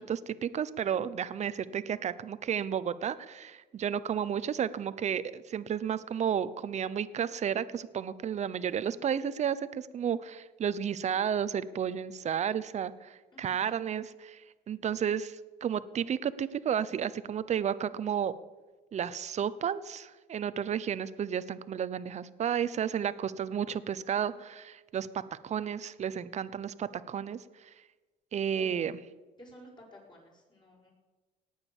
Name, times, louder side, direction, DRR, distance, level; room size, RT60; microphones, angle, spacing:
voice 1, 0.0-18.3 18.9-25.1 25.4-27.7 28.3-28.9, right 8 dB, 40° right, 15 dB, 0.8 m, -32 dB
voice 2, 13.3-13.8 28.5-29.1 29.4-30.9, left 1 dB, 25° left, -1 dB, 5.8 m, -53 dB
18.0 x 9.1 x 7.2 m, 1.3 s
cardioid pair, 110°, 17 cm